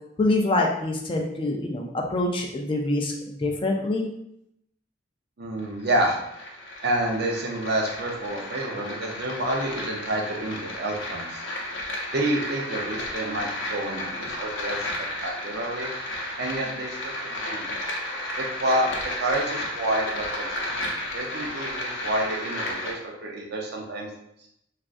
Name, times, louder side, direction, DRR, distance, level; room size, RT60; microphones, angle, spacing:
voice 1, 0.2-4.1, left 2 dB, 30° left, 0 dB, 0.4 m, -25 dB
voice 2, 5.4-6.2 6.8-11.4 12.1-14.9 15.2-15.9 16.4-17.8 18.4-18.9 19.2-24.1, right 1 dB, 60° right, 0 dB, 0.6 m, -29 dB
sound 1, 5.6-22.9, left 1 dB, 90° left, 0.7 m, -33 dB
3.5 x 2.4 x 2.5 m, 0.77 s
head